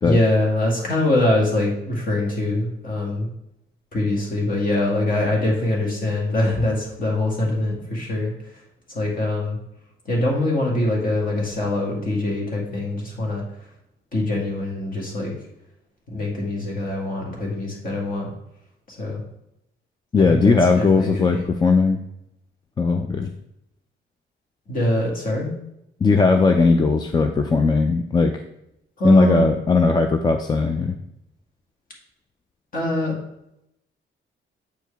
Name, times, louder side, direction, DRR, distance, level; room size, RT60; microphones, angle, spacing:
voice 1, 0.0-3.3 3.9-8.6 8.9-9.6 10.1-13.4 14.1-15.3 16.1-18.3 18.9-19.2 20.2-21.5 24.7-25.5 29.0-29.5 32.7-33.2, left 1 dB, 40° left, -2 dB, 2.0 m, -23 dB
voice 2, 20.1-22.0 22.8-23.3 26.0-28.4 29.0-31.0, left 4 dB, 20° left, 5 dB, 0.3 m, -18 dB
8.0 x 4.6 x 3.4 m, 0.83 s
wide cardioid pair, 160°, 21 cm